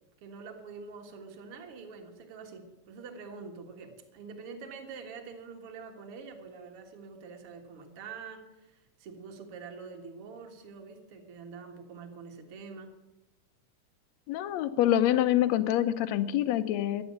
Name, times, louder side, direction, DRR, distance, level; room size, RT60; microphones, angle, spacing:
voice 1, 0.2-12.9, right 5 dB, 50° right, 3 dB, 2.4 m, -45 dB
voice 2, 14.3-17.0, left 12 dB, 70° left, 12 dB, 1.8 m, -26 dB
12.0 x 9.0 x 9.3 m, 1.0 s
omnidirectional pair, 3.6 m